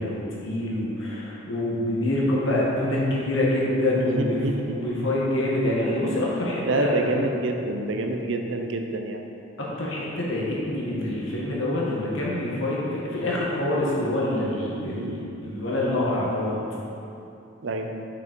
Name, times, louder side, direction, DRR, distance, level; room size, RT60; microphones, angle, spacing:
voice 1, 0.0-4.4 4.7-7.1 9.6-16.5, left 1 dB, 70° left, -5 dB, 1.6 m, -26 dB
voice 2, 4.0-4.8 6.6-9.2 12.7-12.9 14.9-15.2 17.6-17.9, right 2 dB, 65° right, 4 dB, 0.6 m, -27 dB
6.2 x 6.0 x 4.5 m, 2.7 s
head